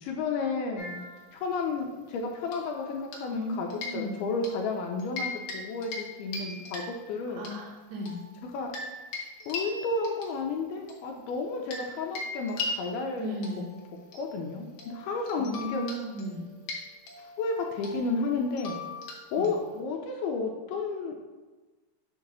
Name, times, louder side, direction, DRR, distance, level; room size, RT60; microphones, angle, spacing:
voice 1, 0.0-1.0 1.3-7.4 8.5-8.7 9.5-13.4 14.1-15.9 17.4-18.8 19.3-21.2, left 4 dB, 80° left, 1 dB, 2.4 m, -32 dB
sound 1, 0.8-1.8 2.5-3.4 3.7-4.6 5.0-5.6 5.8-6.1 6.3-7.5 8.1-11.9 12.2-19.8, left 3 dB, 65° left, 2.2 m, -40 dB
voice 2, 3.3-4.2 7.4-8.2 13.2-13.7 15.3-16.4, equal, 75° right, -3 dB, 3.3 m, -35 dB
7.1 x 2.9 x 5.9 m, 1.2 s
omnidirectional pair, 4.8 m